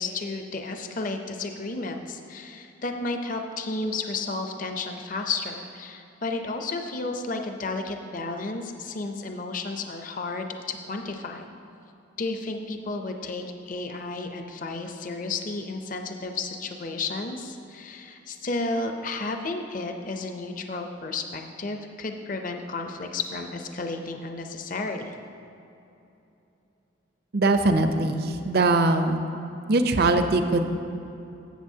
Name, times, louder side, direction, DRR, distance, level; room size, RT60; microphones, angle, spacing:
voice 1, 0.0-11.5 12.2-25.1, left 3 dB, 45° left, 5 dB, 0.6 m, -32 dB
voice 2, 27.3-29.3 29.7-30.7, right 2 dB, 55° right, 8 dB, 0.5 m, -21 dB
13.0 x 7.9 x 2.8 m, 2.9 s
head